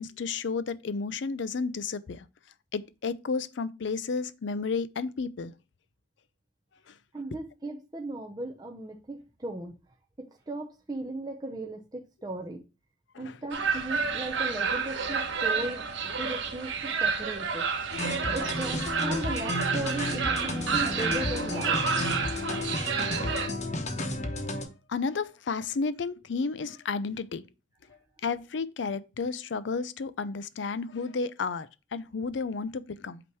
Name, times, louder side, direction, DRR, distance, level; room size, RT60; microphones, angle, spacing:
voice 1, 0.0-2.3 2.7-5.5 6.9-7.0 13.1-13.4 22.5-22.6 24.9-27.4 28.2-33.2, left 4 dB, 70° left, 0.5 m, -32 dB
voice 2, 7.1-9.7 10.2-12.6 13.2-17.7 18.3-21.9, right 2 dB, 20° right, 0.6 m, -37 dB
sound 1, 13.5-23.5, right 5 dB, 80° right, 1.2 m, -30 dB
sound 2, 17.9-24.6, left 1 dB, 35° left, 1.0 m, -32 dB
8.4 x 3.0 x 4.6 m
head